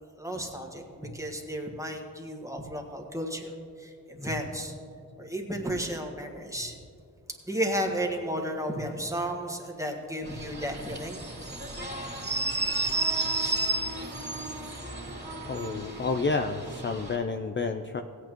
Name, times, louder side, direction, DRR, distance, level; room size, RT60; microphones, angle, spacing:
voice 1, 0.2-3.5 3.8-4.7 5.2-6.8 7.5-11.4, equal, 10° right, 2 dB, 1.6 m, -33 dB
sound 1, 10.2-17.2, right 2 dB, 25° right, 2.7 m, -32 dB
voice 2, 15.4-18.0, left 4 dB, 30° left, 6 dB, 0.5 m, -30 dB
16.0 x 8.7 x 3.0 m, 2.4 s
cardioid pair, 55°, 39 cm